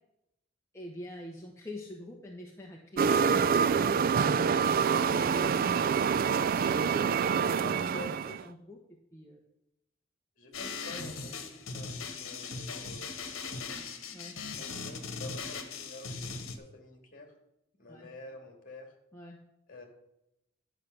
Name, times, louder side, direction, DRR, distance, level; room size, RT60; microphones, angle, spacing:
voice 1, 0.7-6.0 6.6-8.0 8.3-8.8 9.1-9.4 14.1-14.3 17.9-18.1 19.1-19.4, left 1 dB, 15° left, -2 dB, 1.0 m, -46 dB
sound 1, 3.0-8.4, right 6 dB, 45° right, 0.3 m, -26 dB
voice 2, 7.6-8.2 10.4-13.7 14.6-17.3 17.8-18.9 19.7-19.8, left 2 dB, 45° left, 3 dB, 2.2 m, -48 dB
sound 2, 10.5-16.6, left 4 dB, 80° left, 1.2 m, -39 dB
10.5 x 6.6 x 5.8 m, 0.86 s
head